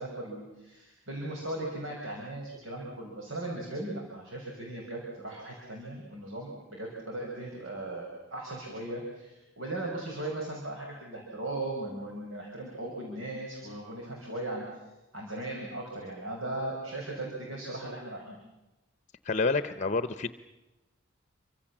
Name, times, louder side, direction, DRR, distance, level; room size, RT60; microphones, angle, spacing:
voice 1, 0.0-14.8 15.1-18.4, right 1 dB, 75° right, -1 dB, 5.8 m, -38 dB
voice 2, 19.2-20.3, left 3 dB, 35° left, 12 dB, 0.8 m, -28 dB
28.5 x 24.5 x 7.3 m, 1.0 s
head